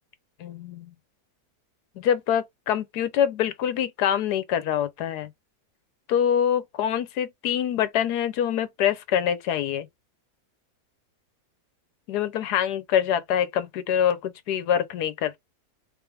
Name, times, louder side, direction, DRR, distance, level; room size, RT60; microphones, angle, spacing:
voice 1, 0.4-0.9 2.0-5.3 6.1-9.9 12.1-15.4, left 9 dB, 80° left, 1.3 m, -25 dB
3.4 x 3.3 x 3.4 m
omnidirectional pair, 1.7 m